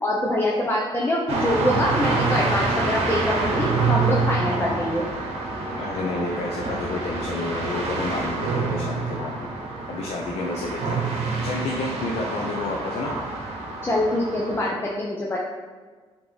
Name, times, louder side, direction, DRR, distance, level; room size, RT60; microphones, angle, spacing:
voice 1, 0.0-5.0 13.8-15.4, left 1 dB, 20° left, -3 dB, 0.8 m, -24 dB
sound 1, 1.3-14.7, right 3 dB, 70° right, 1.1 m, -27 dB
voice 2, 5.8-9.5 9.9-13.2, left 3 dB, 75° left, 0 dB, 0.7 m, -30 dB
7.8 x 3.7 x 4.0 m, 1.4 s
cardioid pair, 110°, 11 cm